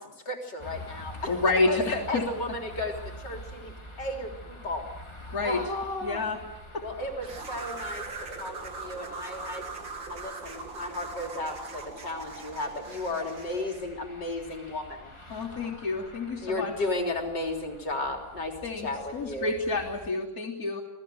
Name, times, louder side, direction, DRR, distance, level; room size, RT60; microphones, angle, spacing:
voice 1, 0.0-1.3 1.7-4.9 5.4-6.2 6.8-8.1 8.4-9.7 10.1-15.1 16.4-18.6 18.8-19.5, left 2 dB, 65° left, 3 dB, 4.3 m, -34 dB
sound 1, 0.6-20.1, equal, 15° left, 2.4 m, -47 dB
voice 2, 1.3-2.6 5.3-5.6 6.0-6.4 6.7-6.8 15.3-16.7 18.6-20.8, left 3 dB, 50° left, -5 dB, 3.8 m, -29 dB
sound 2, 7.2-13.9, right 4 dB, 85° right, 3.4 m, -40 dB
28.5 x 19.0 x 7.9 m, 0.91 s
omnidirectional pair, 2.1 m